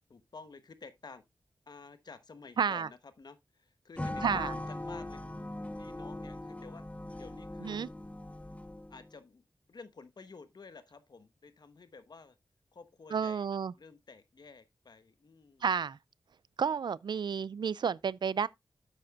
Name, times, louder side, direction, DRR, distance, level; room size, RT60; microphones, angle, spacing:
voice 1, 0.1-1.2 1.7-5.2 5.8-6.8 7.2-7.8 8.9-12.4 12.7-13.5 13.8-15.7 17.1-17.2, left 4 dB, 60° left, 1.1 m, -52 dB
voice 2, 2.6-2.9 4.2-4.5 7.6-7.9 13.1-13.7 15.6-16.0 16.6-18.5, right 6 dB, 70° right, 0.4 m, -31 dB
sound 1, 4.0-9.1, left 1 dB, 15° left, 0.9 m, -40 dB
10.5 x 7.7 x 2.4 m
wide cardioid pair, 65°, 8 cm